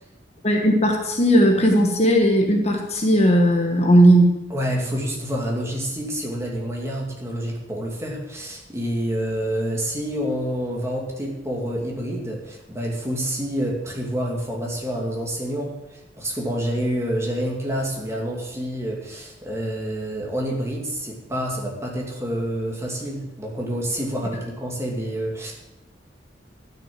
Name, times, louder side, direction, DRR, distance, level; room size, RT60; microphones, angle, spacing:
voice 1, 0.4-4.3, equal, 35° left, 2 dB, 1.4 m, -17 dB
voice 2, 4.5-25.5, equal, 15° right, -2 dB, 2.5 m, -28 dB
12.0 x 6.6 x 7.7 m, 0.98 s
head